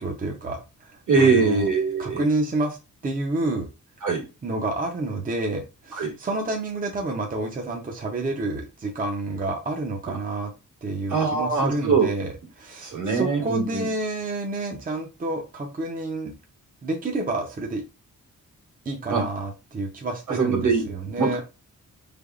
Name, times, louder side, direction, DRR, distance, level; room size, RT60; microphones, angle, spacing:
voice 1, 0.0-1.7 2.0-2.8 3.0-3.7 4.4-10.5 10.8-16.3 16.8-17.8 18.9-21.4, right 2 dB, 25° right, 2 dB, 0.5 m, -29 dB
voice 2, 1.1-2.2 4.0-4.2 6.0-6.1 11.1-12.1 12.8-13.9 19.1-19.2 20.3-20.8 21.2-21.4, right 4 dB, 65° right, 0 dB, 1.7 m, -22 dB
4.6 x 3.4 x 2.3 m, 0.29 s
wide cardioid pair, 175°, 32 cm